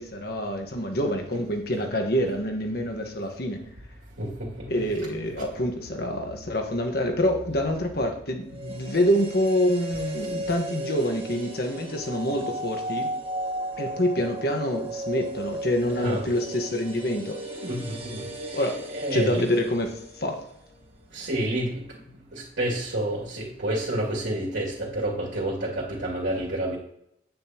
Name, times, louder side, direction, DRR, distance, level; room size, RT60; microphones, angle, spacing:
voice 1, 0.0-3.6 4.7-13.1 13.8-17.4 18.5-18.8 19.1-20.4, equal, 55° left, 3 dB, 1.5 m, -26 dB
voice 2, 4.2-4.8 5.4-5.5 6.3-6.4 15.9-16.3 17.6-19.5 21.1-21.8 22.3-26.8, right 1 dB, 75° right, -5 dB, 2.6 m, -29 dB
sound 1, 8.5-20.6 20.9-21.0, right 1 dB, 30° right, 1.7 m, -35 dB
9.4 x 9.2 x 3.0 m, 0.76 s
head